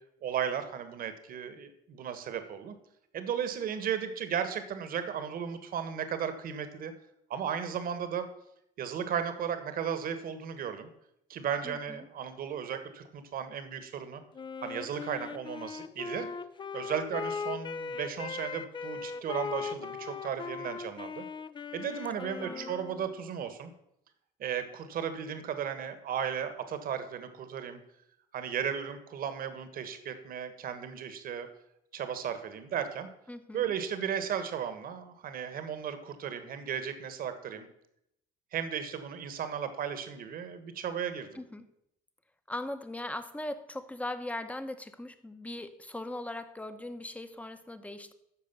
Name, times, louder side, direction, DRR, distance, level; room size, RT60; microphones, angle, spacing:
voice 1, 0.2-2.7 3.1-6.9 7.3-8.3 8.8-10.9 11.3-14.2 14.6-16.3 16.7-21.2 21.7-23.7 24.4-27.8 28.3-31.5 31.9-33.1 33.5-37.7 38.5-41.4, right 8 dB, 60° right, 10 dB, 1.5 m, -35 dB
voice 2, 11.6-12.0 22.4-22.7 33.3-33.7 41.3-41.6 42.5-48.1, left 1 dB, 10° left, 10 dB, 0.9 m, -39 dB
Wind instrument woodwind instrument, 14.3-23.2, left 5 dB, 30° left, 0.5 m, -39 dB
13.0 x 5.0 x 6.9 m, 0.78 s
cardioid pair, 110°, 17 cm